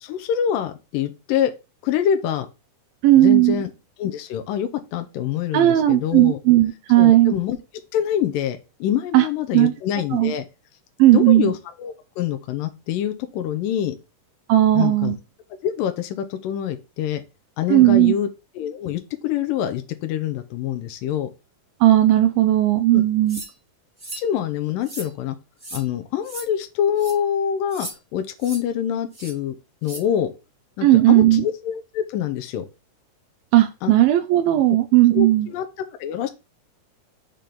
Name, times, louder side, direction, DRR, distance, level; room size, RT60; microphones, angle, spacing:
voice 1, 0.0-1.5 1.8-2.5 3.1-3.7 4.0-6.4 7.0-7.6 7.9-10.5 11.1-14.0 14.7-15.1 15.6-17.2 17.6-18.3 18.6-21.3 22.9-23.0 24.2-25.4 25.7-29.6 29.8-30.3 30.8-32.7 33.8-33.9 34.7-34.8 35.1-35.7 36.0-36.3, left 9 dB, 75° left, 7 dB, 2.4 m, -25 dB
voice 2, 3.0-3.6 5.5-7.3 9.1-9.2 9.5-9.7 10.1-10.3 11.0-11.5 14.5-15.2 17.7-18.1 21.8-23.4 30.8-31.4 33.5-35.5, right 15 dB, 85° right, 6 dB, 2.4 m, -16 dB
sound 1, 23.3-23.5 24.0-24.3 24.8-25.1 25.6-25.8 26.2-26.5 27.0-27.1 27.7-27.9 28.4-28.6 29.1-29.3 29.8-30.0, right 2 dB, 15° right, 0.8 m, -36 dB
6.8 x 3.5 x 5.9 m, 0.27 s
omnidirectional pair, 4.2 m